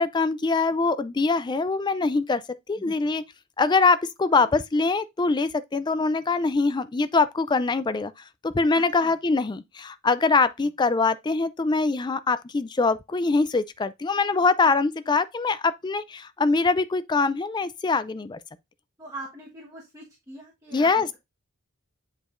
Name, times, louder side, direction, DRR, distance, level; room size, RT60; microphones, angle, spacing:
voice 1, 0.0-3.2 3.6-8.1 8.4-18.4 20.7-21.2, left 4 dB, 20° left, 0.3 m, -23 dB
voice 2, 8.7-9.2 10.6-10.7 14.6-15.2 19.0-21.2, right 1 dB, 15° right, 1.2 m, -42 dB
8.3 x 4.9 x 2.5 m
head